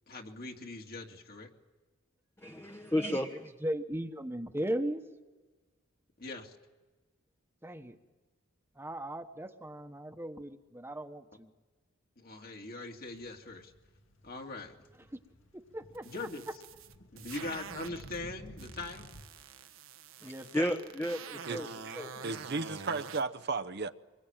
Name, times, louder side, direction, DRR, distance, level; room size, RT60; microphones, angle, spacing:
voice 1, 0.1-1.5 6.2-6.5 12.2-13.7 14.2-14.8 16.0-16.5 17.1-19.0, left 2 dB, 50° left, 2.5 m, -41 dB
voice 2, 2.4-3.5 20.2-21.7 21.9-22.1, left 1 dB, 15° left, 0.9 m, -33 dB
voice 3, 3.6-5.0 7.6-8.0 8.8-11.5 15.7-16.0 20.2-20.8, right 1 dB, 10° right, 1.2 m, -37 dB
sound 1, 13.1-19.2, equal, 70° left, 2.2 m, -53 dB
sound 2, 15.9-18.2 18.6-23.2, right 5 dB, 90° right, 1.5 m, -46 dB
voice 4, 21.4-23.9, right 4 dB, 55° right, 0.8 m, -35 dB
26.0 x 21.5 x 9.1 m
head